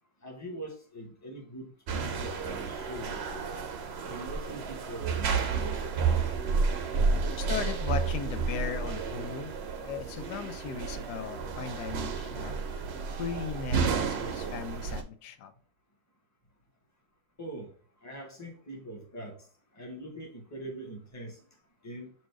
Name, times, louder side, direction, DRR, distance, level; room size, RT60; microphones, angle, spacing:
voice 1, 0.2-3.5 4.0-5.9 17.4-22.1, right 1 dB, 10° left, 0.9 m, -43 dB
sound 1, 1.9-15.0, right 5 dB, 60° right, 0.7 m, -31 dB
voice 2, 7.4-12.9 13.2-15.5, left 7 dB, 90° left, 1.2 m, -37 dB
4.3 x 2.6 x 4.6 m
omnidirectional pair, 1.7 m